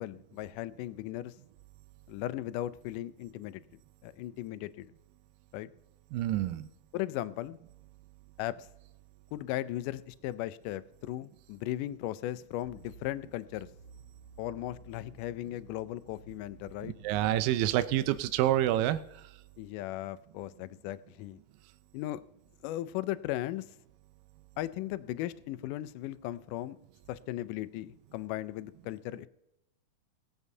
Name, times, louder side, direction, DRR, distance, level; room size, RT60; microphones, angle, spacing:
voice 1, 0.0-1.3 2.1-3.6 4.0-4.9 5.5-5.7 6.9-7.6 8.4-8.7 9.3-13.7 14.4-16.9 19.6-21.4 21.9-22.2 22.6-23.7 24.6-26.8 27.1-29.3, left 14 dB, 80° left, 15 dB, 2.0 m, -37 dB
voice 2, 6.1-6.7 16.8-19.0, right 13 dB, 90° right, 13 dB, 2.3 m, -28 dB
sound 1, 12.6-18.2, right 3 dB, 50° left, 1.9 m, -54 dB
22.0 x 8.2 x 2.7 m, 0.81 s
omnidirectional pair, 3.9 m